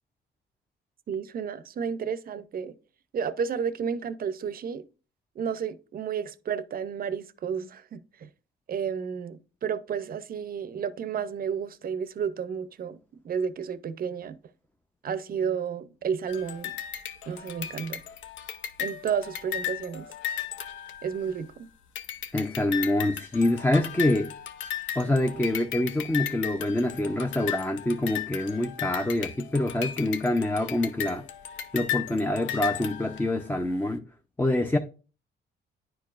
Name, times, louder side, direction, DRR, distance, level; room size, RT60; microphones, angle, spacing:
voice 1, 1.1-2.7 3.1-4.9 5.4-8.3 8.7-13.0 13.2-14.4 15.0-16.8 17.3-18.0 18.8-20.1 21.0-21.7, right 7 dB, 45° right, 0.6 m, -32 dB
sound 1, 16.3-21.5 21.9-33.5, left 10 dB, 75° left, 0.7 m, -36 dB
voice 2, 22.3-24.3 25.0-31.2 31.7-34.0 34.4-34.8, left 1 dB, 10° left, 0.5 m, -26 dB
10.0 x 4.7 x 2.4 m
cardioid pair, 90°, 20 cm